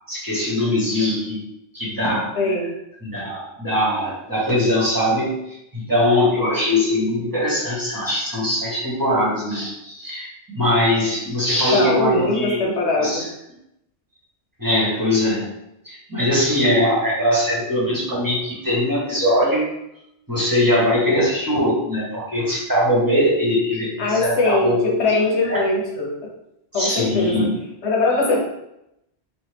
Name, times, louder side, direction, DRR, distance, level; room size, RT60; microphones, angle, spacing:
voice 1, 0.1-1.4 1.7-2.3 3.0-13.3 14.6-15.5 15.8-19.7 20.3-25.6 26.7-27.6, left 1 dB, 20° right, -6 dB, 1.3 m, -21 dB
voice 2, 2.4-2.7 11.7-13.2 24.0-26.1 26.7-27.5 27.8-28.4, left 3 dB, 85° left, -1 dB, 1.2 m, -21 dB
4.2 x 2.7 x 3.3 m, 0.83 s
omnidirectional pair, 1.1 m